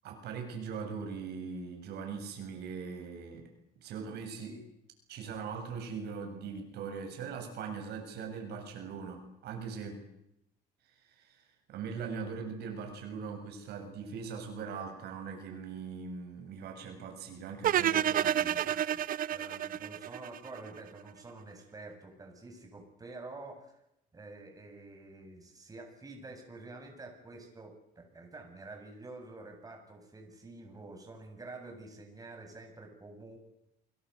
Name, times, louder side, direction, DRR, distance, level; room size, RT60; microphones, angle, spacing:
voice 1, 0.0-3.5 3.8-4.5 5.1-10.0 11.0-18.6, right 5 dB, 75° right, 4 dB, 7.6 m, -41 dB
sound 1, 17.6-20.8, right 11 dB, 55° right, 1.0 m, -29 dB
voice 2, 17.8-19.0 19.3-23.7 24.1-33.4, right 2 dB, 20° right, 3 dB, 7.8 m, -48 dB
29.5 x 21.5 x 8.3 m, 0.83 s
cardioid pair, 110°, 17 cm